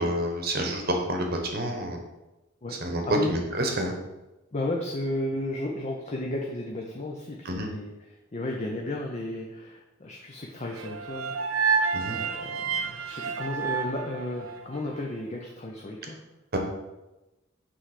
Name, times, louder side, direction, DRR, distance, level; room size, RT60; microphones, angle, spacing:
voice 1, 0.0-2.0 2.8-3.0 3.3-3.9 7.4-7.7 11.9-12.2 16.5-16.6, right 1 dB, 50° right, 3 dB, 0.9 m, -29 dB
voice 2, 4.5-11.6 12.1-16.2, left 1 dB, 35° left, 0 dB, 0.5 m, -33 dB
viola overtones, 10.8-15.0, right 5 dB, 75° right, 0.5 m, -29 dB
6.2 x 3.3 x 4.9 m, 1.0 s
head